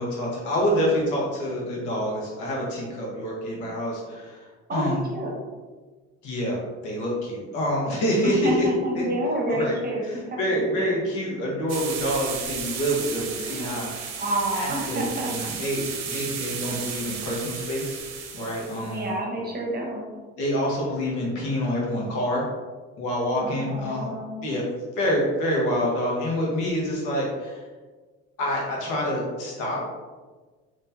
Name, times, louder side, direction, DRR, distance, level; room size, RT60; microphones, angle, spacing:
voice 1, 0.0-4.4 4.7-5.0 6.2-8.7 8.9-9.0 9.5-9.7 10.0-13.9 14.5-18.0 18.3-19.1 20.4-22.5 23.0-24.1 24.4-24.6 25.0-27.6 28.4-29.8, equal, 75° left, -3 dB, 1.3 m, -27 dB
voice 2, 4.7-5.3 8.2-11.0 13.0-13.9 14.2-15.3 18.8-20.1 23.3-24.5, right 1 dB, 30° right, -1 dB, 1.0 m, -29 dB
sound 1, 11.7-19.0, right 7 dB, 60° right, 0.7 m, -34 dB
3.5 x 3.0 x 2.8 m, 1.3 s
supercardioid pair, 90°, 30 cm